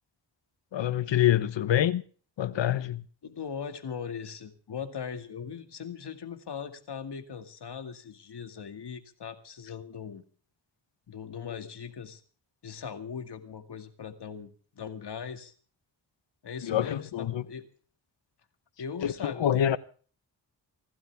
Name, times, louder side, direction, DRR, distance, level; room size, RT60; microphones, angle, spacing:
voice 1, 0.7-2.0 2.4-3.1 16.6-17.4 19.0-19.8, left 11 dB, 85° left, 1.1 m, -26 dB
voice 2, 3.2-10.2 11.1-12.2 12.6-14.5 14.8-15.5 16.4-17.7 18.8-19.7, left 6 dB, 65° left, 2.2 m, -39 dB
28.0 x 12.5 x 3.5 m
cardioid pair, 80°, 43 cm